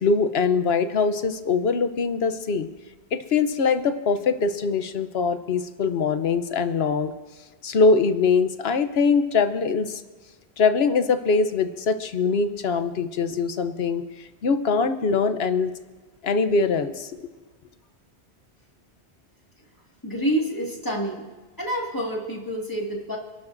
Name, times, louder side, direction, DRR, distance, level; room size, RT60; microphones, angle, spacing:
voice 1, 0.0-2.7 3.1-7.1 7.6-10.0 10.6-15.7 16.2-17.1, left 4 dB, 65° left, 10 dB, 1.1 m, -22 dB
voice 2, 20.0-21.3 21.6-23.2, right 1 dB, 20° left, -1 dB, 2.1 m, -27 dB
28.5 x 12.0 x 2.6 m, 1.3 s
omnidirectional pair, 1.1 m